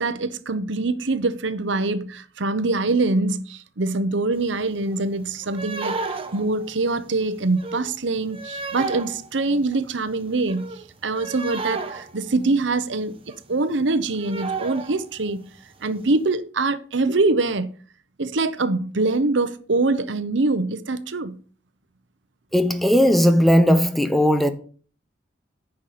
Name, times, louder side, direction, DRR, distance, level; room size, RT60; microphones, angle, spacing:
voice 1, 0.0-10.7 11.0-15.4 15.8-17.7 18.2-21.4, right 3 dB, 75° right, 0.9 m, -24 dB
sound 1, 4.4-4.5 4.7-5.0 5.4-12.8 13.1-13.4 13.7-13.8 14.0-15.3 15.6-15.7 16.1-16.2, right 3 dB, 30° right, 1.1 m, -33 dB
voice 2, 22.5-24.5, equal, ahead, 0.8 m, -17 dB
9.6 x 5.6 x 6.7 m
head